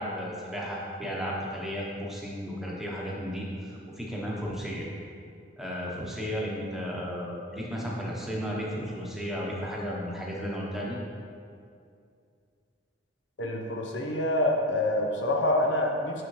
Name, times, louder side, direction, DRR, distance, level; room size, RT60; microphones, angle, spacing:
voice 1, 0.0-4.9 5.6-11.0, equal, ahead, -5 dB, 0.9 m, -34 dB
voice 2, 13.4-16.2, left 1 dB, 85° left, 1 dB, 0.8 m, -26 dB
6.9 x 6.1 x 3.1 m, 2.4 s
head